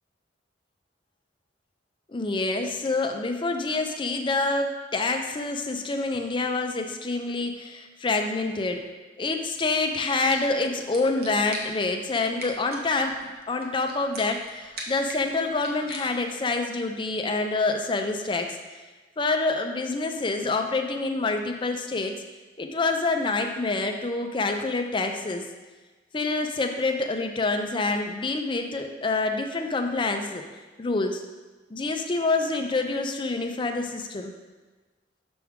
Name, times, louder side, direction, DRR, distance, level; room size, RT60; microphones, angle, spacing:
voice 1, 2.1-8.8 9.2-18.6 19.2-22.1 22.6-25.4 26.1-30.4 30.8-31.2 31.7-34.3, left 3 dB, 25° left, 4 dB, 0.5 m, -27 dB
sound 1, 10.0-16.5, right 1 dB, 55° right, 1.0 m, -42 dB
6.0 x 5.9 x 3.6 m, 1.3 s
head